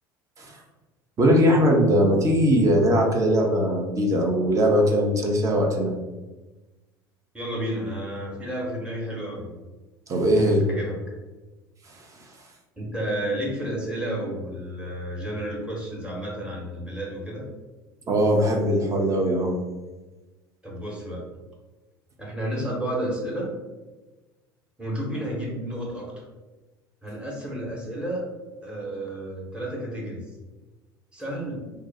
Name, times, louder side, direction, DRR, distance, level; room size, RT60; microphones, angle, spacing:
voice 1, 1.2-5.9 10.1-10.6 18.1-19.5, equal, 25° right, 0 dB, 0.7 m, -20 dB
voice 2, 7.3-9.5 10.3-11.0 12.8-17.4 20.6-21.2 22.2-23.5 24.8-26.1 27.0-28.3 28.6-30.2 31.1-31.7, right 1 dB, 10° right, -4 dB, 1.1 m, -31 dB
2.4 x 2.3 x 4.0 m, 1.2 s
figure-of-eight pair, 65°, 12 cm